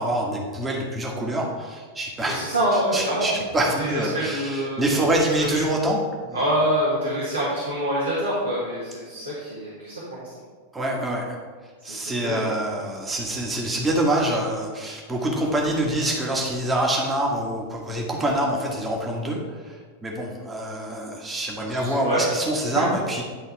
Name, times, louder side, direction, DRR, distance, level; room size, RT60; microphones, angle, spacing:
voice 1, 0.0-2.4 2.7-6.0 6.3-6.4 10.7-11.4 11.8-19.4 19.6-19.8 20.0-23.2, right 1 dB, 15° right, -1 dB, 1.5 m, -25 dB
voice 2, 2.3-3.3 3.8-4.8 5.4-5.6 6.3-10.3 11.9-12.5 21.6-22.3, equal, 80° right, -8 dB, 1.9 m, -26 dB
10.0 x 4.0 x 4.7 m, 1.5 s
figure-of-eight pair, 90°, 0 cm